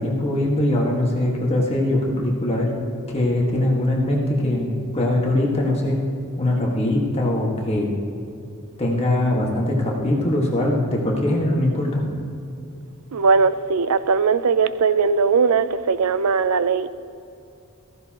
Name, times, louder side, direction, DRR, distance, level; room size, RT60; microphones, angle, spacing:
voice 1, 0.0-2.7 3.1-6.0 6.4-8.0 8.8-12.2, left 1 dB, 30° left, 1.6 m, -21 dB
voice 2, 13.1-16.9, right 5 dB, 85° right, 0.5 m, -19 dB
15.0 x 15.0 x 3.0 m
head